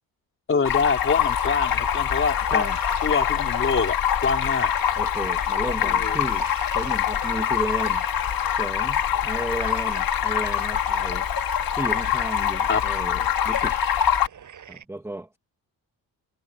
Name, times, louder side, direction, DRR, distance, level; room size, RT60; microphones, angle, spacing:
voice 1, 0.5-2.6 3.0-4.7 5.8-6.2 12.7-12.8, left 5 dB, 30° left, 3.5 m, -25 dB
Stream, 0.6-14.3, left 9 dB, 65° left, 1.7 m, -24 dB
sound 1, 0.7-14.8, right 8 dB, 50° right, 7.2 m, -45 dB
voice 2, 5.0-6.5 6.7-8.1 8.6-11.3 11.8-13.8 14.7-15.4, right 1 dB, 5° right, 1.1 m, -33 dB
wide cardioid pair, 165°, 38 cm